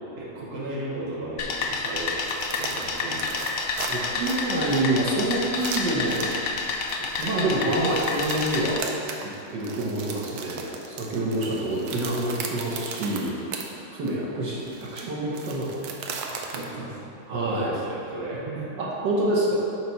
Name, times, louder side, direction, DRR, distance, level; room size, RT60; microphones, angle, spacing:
voice 1, 0.2-3.4 11.4-11.7 16.2-17.0 17.3-18.7, right 2 dB, 35° right, -5 dB, 1.2 m, -36 dB
sound 1, 1.4-8.8, left 4 dB, 90° left, 0.7 m, -29 dB
sound 2, 1.8-13.7 14.1-14.2 14.6-16.6, right 5 dB, 90° right, 1.5 m, -37 dB
voice 2, 3.9-6.2 7.2-8.8 9.2-13.4 13.9-15.8 17.3-17.8 18.8-19.5, right 1 dB, 65° right, -5 dB, 1.6 m, -27 dB
9.2 x 3.1 x 5.7 m, 2.8 s
omnidirectional pair, 2.2 m